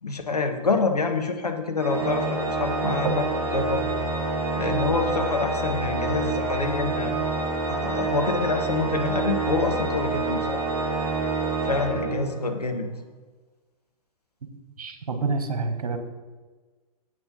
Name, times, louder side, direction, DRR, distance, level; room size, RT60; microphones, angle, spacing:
voice 1, 0.0-3.3 3.5-3.9 4.6-7.1 7.7-10.6 11.6-12.9, left 3 dB, 80° left, 4 dB, 1.5 m, -27 dB
Organ, 1.8-12.7, right 3 dB, 15° right, 2.9 m, -27 dB
voice 2, 14.8-16.0, right 3 dB, 65° right, 7 dB, 1.6 m, -27 dB
8.6 x 7.6 x 5.4 m, 1.3 s
figure-of-eight pair, 110°, 20 cm